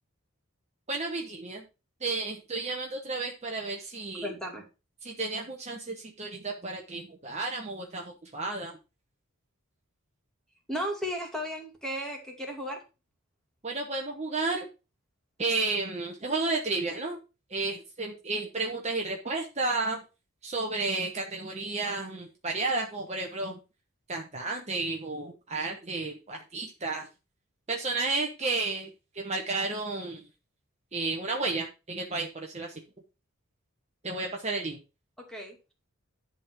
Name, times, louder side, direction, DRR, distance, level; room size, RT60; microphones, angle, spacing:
voice 1, 0.9-1.6 2.0-4.3 5.0-8.8 13.6-14.7 15.4-17.2 17.5-20.0 20.4-23.6 24.1-27.1 27.7-30.3 30.9-32.8 34.0-34.8, right 3 dB, 30° right, 1 dB, 1.1 m, -32 dB
voice 2, 4.2-4.6 10.7-12.8 35.2-35.6, equal, 5° left, 0 dB, 2.4 m, -35 dB
11.0 x 3.8 x 5.9 m, 0.30 s
head